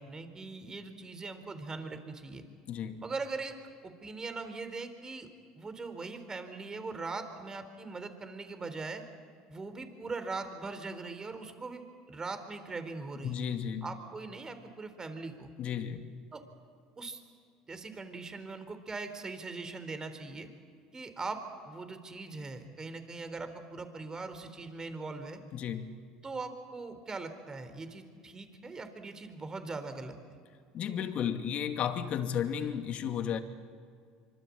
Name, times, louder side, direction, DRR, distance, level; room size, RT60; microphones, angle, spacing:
voice 1, 0.0-2.4 3.0-3.5 3.8-5.3 5.6-9.0 9.5-13.4 13.8-15.5 16.3-16.4 17.0-17.2 17.7-20.5 20.9-25.4 26.2-30.2, right 3 dB, 25° right, 9 dB, 4.1 m, -41 dB
voice 2, 2.7-3.0 13.2-13.9 15.6-16.1 25.5-25.9 30.7-33.4, left 8 dB, 50° left, 7 dB, 2.5 m, -33 dB
26.0 x 25.5 x 8.8 m, 2.2 s
hypercardioid pair, 85°, 3 cm